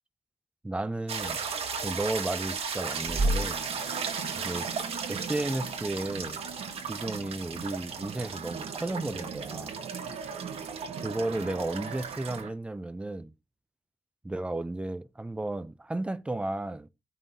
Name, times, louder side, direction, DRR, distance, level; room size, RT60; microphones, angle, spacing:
voice 1, 0.6-1.4 1.8-3.6 4.4-4.7 5.1-6.4 6.8-9.7 11.0-13.3 14.2-16.9, right 2 dB, 10° right, 0.4 m, -33 dB
sound 1, 1.1-12.4, right 4 dB, 60° right, 1.6 m, -35 dB
sound 2, 2.8-12.5, right 7 dB, 80° right, 1.1 m, -42 dB
15.5 x 5.5 x 2.7 m
wide cardioid pair, 150°, 11 cm